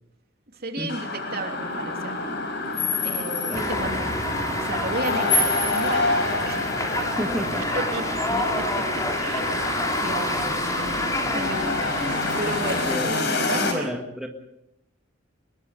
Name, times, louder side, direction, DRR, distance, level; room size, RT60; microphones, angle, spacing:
voice 1, 0.5-2.3 2.8-6.7 7.2-7.3 7.7-8.0 8.3-9.5 10.0-13.9, right 2 dB, 50° right, 3 dB, 3.1 m, -34 dB
sound 1, 0.9-13.7, left 3 dB, 60° left, 5.1 m, -28 dB
sound 2, 3.5-13.0, left 1 dB, 15° left, 3.8 m, -28 dB
voice 2, 3.5-3.9 7.1-7.7 8.3-8.4 12.7-13.1 13.5-14.3, equal, 5° right, 1 dB, 1.8 m, -31 dB
24.5 x 21.5 x 5.3 m, 0.83 s
head